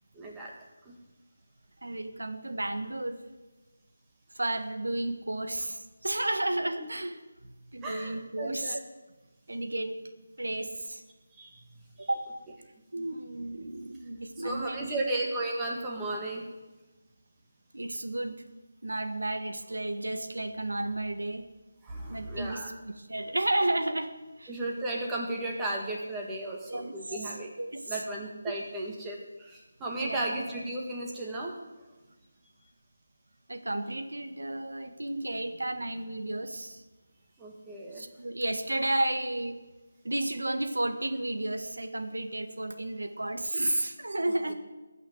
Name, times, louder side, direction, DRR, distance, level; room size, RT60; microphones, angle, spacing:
voice 1, 0.1-0.5 0.9-1.0 7.8-8.8 11.3-11.5 12.0-12.1 13.0-13.1 14.4-16.5 21.8-22.7 24.5-27.5 27.9-31.5 37.4-38.0, right 2 dB, 10° right, -2 dB, 1.9 m, -35 dB
voice 2, 1.8-3.2 4.3-7.2 7.7-8.8 9.5-9.9 10.4-11.0 12.0-12.2 12.9-15.0 17.7-18.5 18.8-21.5 22.1-24.5 26.7-26.9 27.6-28.0 30.0-30.2 33.5-36.8 37.9-39.6 40.0-44.5, right 1 dB, 90° right, 8 dB, 1.5 m, -32 dB
16.0 x 6.2 x 8.1 m, 1.1 s
figure-of-eight pair, 165°, 0 cm